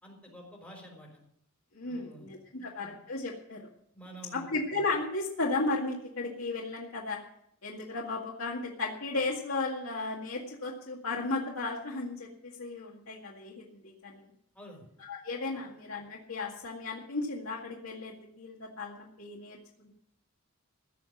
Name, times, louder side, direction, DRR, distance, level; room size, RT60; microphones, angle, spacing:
voice 1, 0.0-1.2 1.8-2.3 2.6-2.9 3.9-4.5 14.5-14.9 15.5-15.6, equal, 5° left, -1 dB, 4.1 m, -49 dB
voice 2, 1.7-3.6 4.3-7.2 7.6-14.3 15.0-19.9, left 3 dB, 75° left, -3 dB, 2.0 m, -35 dB
16.0 x 6.0 x 9.8 m, 0.71 s
head